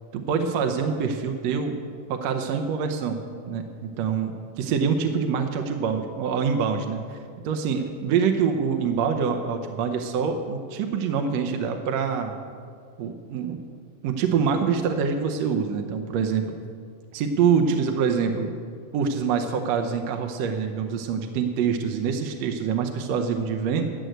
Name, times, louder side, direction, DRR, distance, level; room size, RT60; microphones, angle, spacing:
voice 1, 0.1-1.8 2.1-3.2 3.5-4.3 4.6-7.2 7.4-12.3 13.0-13.6 14.0-16.4 17.1-18.5 18.9-23.9, right 6 dB, 70° right, 5 dB, 1.7 m, -25 dB
13.0 x 7.7 x 8.0 m, 2.1 s
omnidirectional pair, 3.7 m